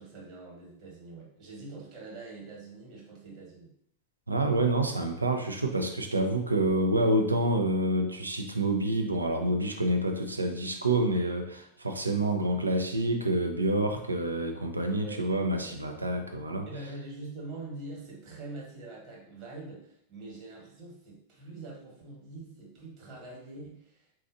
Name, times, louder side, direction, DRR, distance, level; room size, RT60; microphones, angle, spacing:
voice 1, 0.0-3.7 15.0-15.3 16.7-24.1, right 2 dB, 40° right, -3 dB, 1.2 m, -44 dB
voice 2, 4.3-16.7, right 1 dB, 80° right, 4 dB, 0.4 m, -28 dB
4.1 x 2.4 x 2.5 m, 0.70 s
figure-of-eight pair, 90°, 0 cm